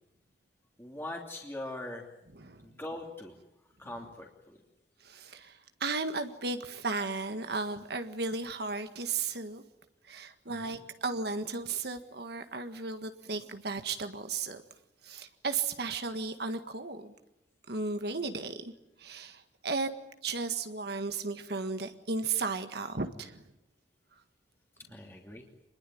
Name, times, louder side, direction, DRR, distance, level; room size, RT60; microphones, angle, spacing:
voice 1, 0.8-2.0 2.6-3.4 3.8-4.6 10.5-10.8 24.9-25.4, left 1 dB, 15° left, 0 dB, 2.9 m, -41 dB
voice 2, 2.3-2.7 5.0-9.6 10.0-14.6 15.0-17.1 17.7-18.7 19.0-19.9 20.2-23.4, right 4 dB, 65° right, 8 dB, 1.7 m, -35 dB
26.5 x 21.5 x 9.4 m, 0.88 s
head